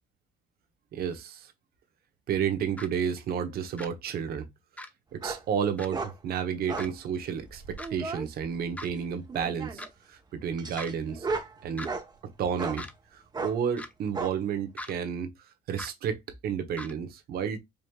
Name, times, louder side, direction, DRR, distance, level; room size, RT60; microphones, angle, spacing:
voice 1, 0.9-1.5 2.3-4.5 5.1-9.8 10.1-11.3 11.6-11.9 12.2-15.3 15.7-17.6, right 7 dB, 65° right, 1.0 m, -31 dB
sound 1, 2.8-2.9 3.8-3.9 4.8-4.9 5.8-5.9 6.8-6.9 7.8-7.9 8.8-8.9 9.8-9.9 10.8-10.9 11.8-11.9 12.8-12.9 13.8-13.9 14.8-14.9 15.8-15.9 16.8-16.9, left 1 dB, 10° left, 0.6 m, -39 dB
sound 2, 5.2-5.4 5.9-6.1 6.7-6.9 7.5-8.2 9.3-9.9 10.6-12.1 12.6-12.8 13.3-13.6 14.1-14.3, right 4 dB, 25° right, 0.9 m, -35 dB
5.1 x 3.0 x 2.3 m
cardioid pair, 110°, 17 cm